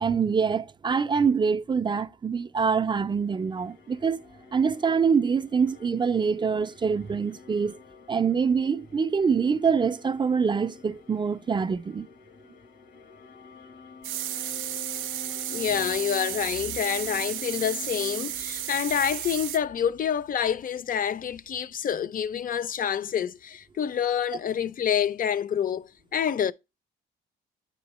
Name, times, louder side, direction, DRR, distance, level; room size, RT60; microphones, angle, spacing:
voice 1, 0.0-4.2 4.5-7.8 8.1-12.1, right 6 dB, 25° right, 0.4 m, -25 dB
sound 1, 3.0-19.3, left 5 dB, 80° left, 1.0 m, -48 dB
sound 2, 14.0-19.6, right 12 dB, 80° right, 0.4 m, -33 dB
voice 2, 15.5-26.5, left 8 dB, 45° left, 0.5 m, -27 dB
9.5 x 3.7 x 3.0 m
cardioid pair, 90°, 20 cm